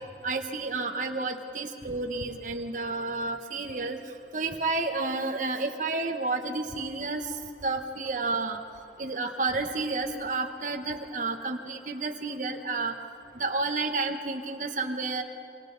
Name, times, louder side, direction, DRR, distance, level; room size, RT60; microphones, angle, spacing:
voice 1, 0.2-4.0 4.3-7.3 7.6-8.6 9.0-12.9 13.4-15.2, right 3 dB, 45° right, 4 dB, 1.1 m, -30 dB
27.5 x 24.0 x 4.0 m, 2.5 s
head